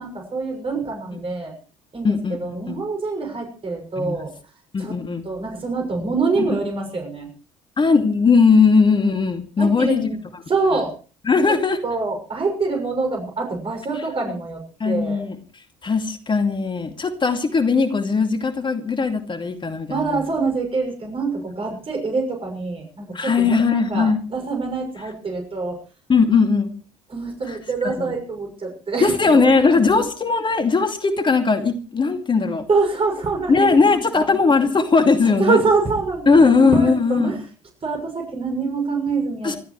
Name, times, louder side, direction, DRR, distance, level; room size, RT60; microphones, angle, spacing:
voice 1, 0.0-1.5 1.9-4.3 4.8-5.0 5.2-7.3 9.6-10.2 10.5-10.9 11.4-11.5 11.8-15.2 19.9-25.8 27.1-29.8 32.7-33.7 34.1-34.3 35.4-37.4 37.8-39.6, right 4 dB, 35° right, 2 dB, 6.6 m, -25 dB
voice 2, 2.0-2.8 4.0-4.2 4.7-5.2 6.4-6.6 7.8-10.1 11.3-11.8 14.8-15.4 15.8-20.2 23.1-24.2 26.1-26.7 27.5-27.6 27.8-28.1 29.0-32.7 33.5-35.6 36.3-37.3 39.4-39.6, left 4 dB, 30° left, 7 dB, 2.4 m, -18 dB
28.5 x 13.5 x 3.2 m, 0.37 s
figure-of-eight pair, 55°, 16 cm